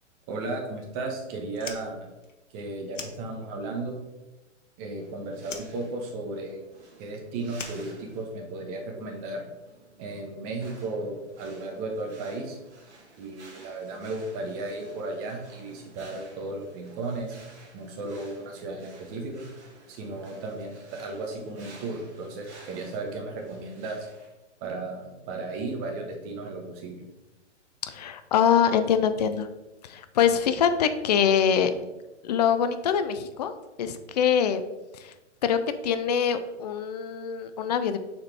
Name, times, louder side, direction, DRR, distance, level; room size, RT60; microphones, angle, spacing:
voice 1, 0.3-2.1 2.5-4.0 4.8-6.6 7.0-9.4 10.0-12.6 13.2-17.4 17.7-19.4 19.9-24.1 24.6-27.0, right 2 dB, 30° right, 2 dB, 1.3 m, -35 dB
Fire, 1.5-3.8 4.1-5.1 5.4-8.6, left 5 dB, 80° left, 1.0 m, -43 dB
sound 1, 5.0-24.3, right 2 dB, 65° right, 1.8 m, -53 dB
voice 2, 27.8-29.5 29.8-31.7 32.2-33.5 33.8-34.6 34.9-35.1 35.4-38.0, left 8 dB, 35° left, 10 dB, 0.4 m, -24 dB
6.6 x 4.3 x 3.4 m, 1.1 s
hypercardioid pair, 125°, 37 cm